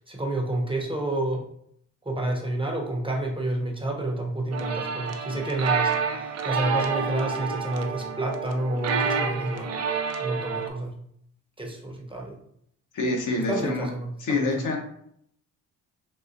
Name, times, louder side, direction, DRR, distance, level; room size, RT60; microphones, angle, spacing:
voice 1, 0.0-1.5 2.0-9.8 10.2-11.0 11.6-12.4 13.4-14.5, right 1 dB, 15° right, 0 dB, 0.8 m, -29 dB
Addison's Prayer, 4.5-10.7, right 5 dB, 50° right, 0.5 m, -28 dB
voice 2, 12.9-13.9 14.2-14.8, left 3 dB, 65° left, 1 dB, 0.9 m, -26 dB
4.0 x 2.4 x 2.6 m, 0.68 s
cardioid pair, 80°, 33 cm